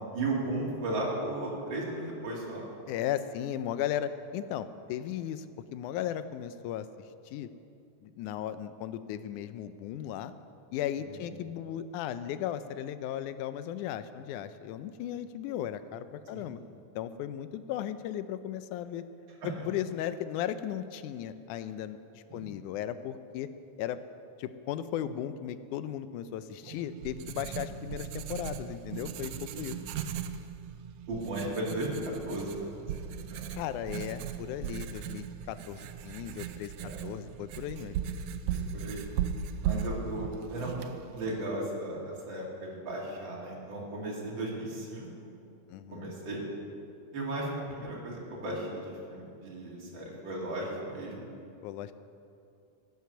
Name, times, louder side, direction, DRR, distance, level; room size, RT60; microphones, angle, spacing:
voice 1, 0.1-2.7 11.0-11.3 16.3-16.5 19.4-19.6 22.3-22.5 27.4-27.7 29.6-29.9 31.1-33.5 36.8-37.0 38.5-39.0 39.6-45.3 45.9-46.4 47.1-51.3, right 1 dB, 40° right, -4 dB, 3.2 m, -36 dB
voice 2, 2.9-5.5 5.7-6.9 7.3-7.5 8.0-10.3 10.7-16.6 17.0-19.0 19.4-23.5 23.8-24.0 24.4-29.8 33.5-38.0 45.7-46.1 51.6-51.9, left 10 dB, 90° left, 12 dB, 2.1 m, -36 dB
Writing, 26.6-41.4, right 8 dB, 80° right, 1.7 m, -38 dB
15.0 x 9.5 x 6.9 m, 2.6 s
omnidirectional pair, 3.5 m